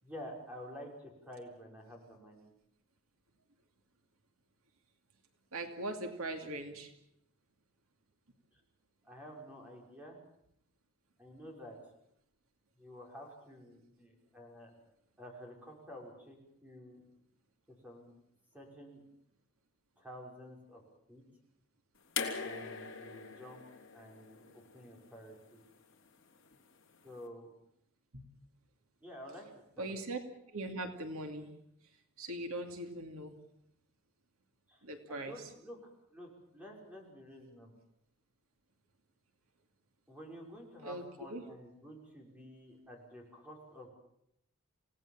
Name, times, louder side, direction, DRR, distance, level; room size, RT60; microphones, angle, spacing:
voice 1, 0.0-2.5 8.5-8.6 9.0-10.2 11.2-11.8 12.8-14.7 15.2-17.0 17.7-18.1 18.5-19.0 20.0-20.8 21.1-21.2 22.4-23.6 23.9-25.6 27.0-27.5 29.0-29.5 29.8-30.0 34.7-37.7 40.1-43.9, equal, 5° right, -1 dB, 5.9 m, -50 dB
voice 2, 5.5-6.9 28.1-28.2 29.8-30.2 30.5-31.5 32.2-33.3 34.8-35.5 40.8-41.4, right 2 dB, 80° right, 5 dB, 2.5 m, -40 dB
sound 1, 22.2-25.3 26.5-26.6, left 6 dB, 60° left, 3.3 m, -41 dB
27.5 x 18.0 x 7.5 m, 0.76 s
head